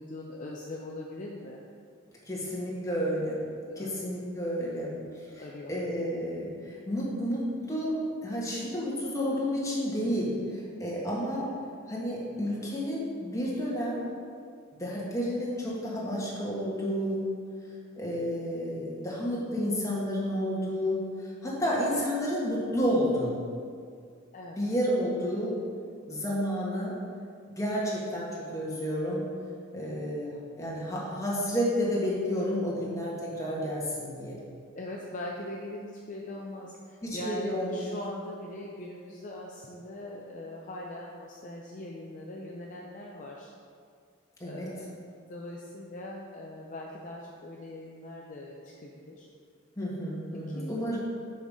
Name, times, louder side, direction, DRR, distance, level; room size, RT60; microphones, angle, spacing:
voice 1, 0.0-1.7 3.6-4.0 5.0-5.8 10.6-10.8 24.3-24.6 29.7-30.1 34.7-43.5 44.4-44.9 45.3-49.3 50.3-51.0, left 1 dB, 40° left, -2 dB, 0.6 m, -41 dB
voice 2, 2.3-3.4 3.8-4.9 5.3-5.4 5.7-11.5 11.9-14.0 14.7-17.3 17.9-23.4 24.6-25.6 26.1-26.9 27.5-29.2 29.7-34.4 37.0-37.9 44.4-44.7 49.8-51.0, equal, 15° left, -6 dB, 1.6 m, -31 dB
6.3 x 5.4 x 4.9 m, 2.2 s
head